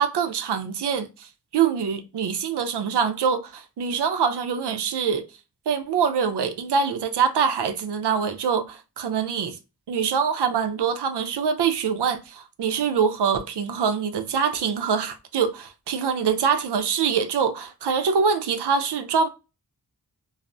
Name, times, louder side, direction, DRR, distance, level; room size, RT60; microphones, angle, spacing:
voice 1, 0.0-5.2 5.7-9.6 9.9-19.3, right 6 dB, 90° right, 0.5 m, -24 dB
3.2 x 2.0 x 2.5 m
wide cardioid pair, 85°, 39 cm